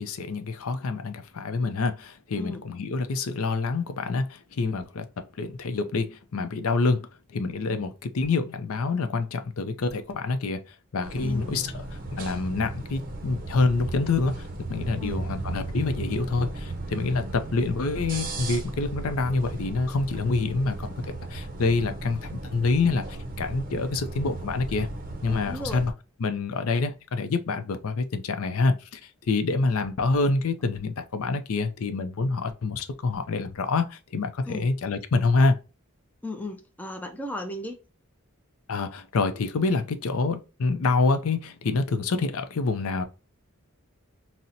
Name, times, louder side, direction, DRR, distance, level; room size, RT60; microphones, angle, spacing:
voice 1, 0.0-5.0 5.4-7.0 7.3-10.6 10.9-11.9 12.1-24.9 25.2-25.9 26.2-29.0 29.3-35.6 38.7-43.0, left 3 dB, 80° left, 0.5 m, -27 dB
sound 1, 11.0-25.9, right 2 dB, 40° right, 0.5 m, -36 dB
voice 2, 11.2-11.6 15.0-15.2 25.4-25.8 34.5-34.7 36.2-37.8, left 2 dB, 10° left, 0.4 m, -35 dB
4.0 x 2.0 x 2.6 m
head